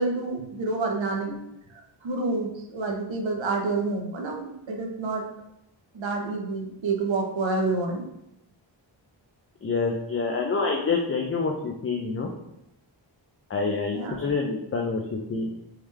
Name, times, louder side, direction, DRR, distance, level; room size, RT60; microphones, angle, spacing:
voice 1, 0.0-1.3 2.0-5.3 5.9-8.1 13.9-14.3, right 3 dB, 70° right, 1 dB, 0.7 m, -28 dB
voice 2, 9.6-12.3 13.5-15.5, left 4 dB, 30° left, 1 dB, 0.4 m, -27 dB
3.5 x 3.2 x 3.2 m, 0.85 s
wide cardioid pair, 115°, 47 cm